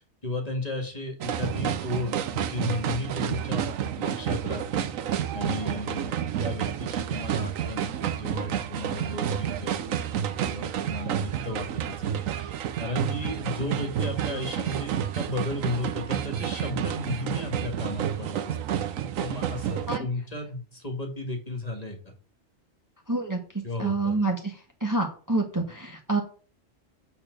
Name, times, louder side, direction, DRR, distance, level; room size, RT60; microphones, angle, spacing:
voice 1, 0.0-4.9 5.3-6.1 6.4-12.5 12.8-18.8 19.2-22.0 23.6-24.2, left 1 dB, 30° left, 3 dB, 1.9 m, -34 dB
sound 1, 1.2-20.0, right 9 dB, 85° right, 1.1 m, -30 dB
voice 2, 23.1-23.4 23.8-24.5 24.8-26.2, right 2 dB, 15° right, 2 dB, 1.2 m, -27 dB
8.6 x 4.3 x 6.5 m, 0.40 s
omnidirectional pair, 1.3 m